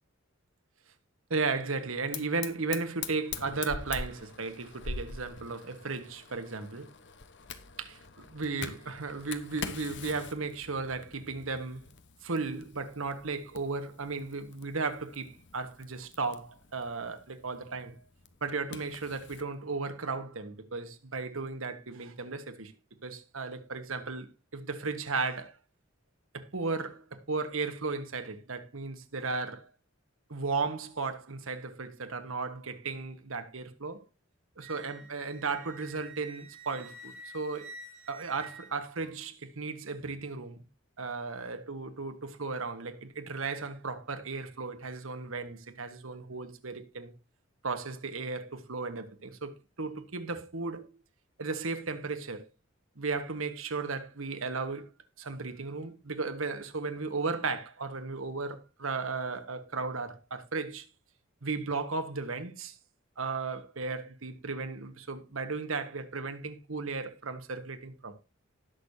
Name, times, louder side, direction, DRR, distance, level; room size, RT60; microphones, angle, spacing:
voice 1, 1.3-6.9 7.8-8.0 8.3-11.8 12.2-17.9 18.4-22.7 23.0-25.6 26.3-29.7 30.3-34.0 34.6-37.7 38.1-40.6 41.0-47.1 47.6-50.9 51.4-52.4 53.0-54.9 55.2-60.9 61.4-62.8 63.2-68.1, right 4 dB, 75° right, 1.5 m, -35 dB
Fire, 2.1-19.5, left 5 dB, 60° left, 1.1 m, -44 dB
Wind instrument woodwind instrument, 34.6-39.2, right 2 dB, 50° right, 7.8 m, -49 dB
19.0 x 6.6 x 2.8 m
head